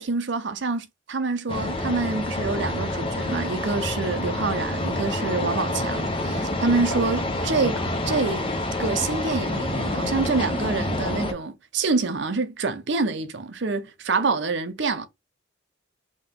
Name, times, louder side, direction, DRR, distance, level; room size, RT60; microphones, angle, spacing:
voice 1, 0.0-8.4 8.8-15.1, right 4 dB, 60° right, 0.6 m, -26 dB
sound 1, 1.5-11.3, left 1 dB, 25° left, 0.6 m, -27 dB
3.7 x 2.8 x 3.7 m
head